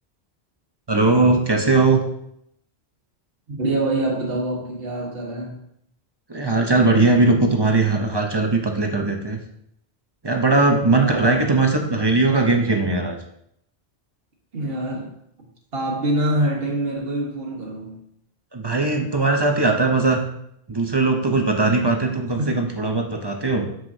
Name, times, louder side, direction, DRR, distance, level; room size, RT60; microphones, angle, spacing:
voice 1, 0.9-2.0 6.3-9.4 10.2-13.2 18.5-20.2 20.7-23.7, right 3 dB, 30° right, 3 dB, 0.6 m, -19 dB
voice 2, 3.5-5.6 11.0-11.7 14.5-15.1 15.7-18.0 22.4-22.6, right 1 dB, 65° right, -1 dB, 1.6 m, -25 dB
7.2 x 5.9 x 2.7 m, 0.76 s
omnidirectional pair, 1.1 m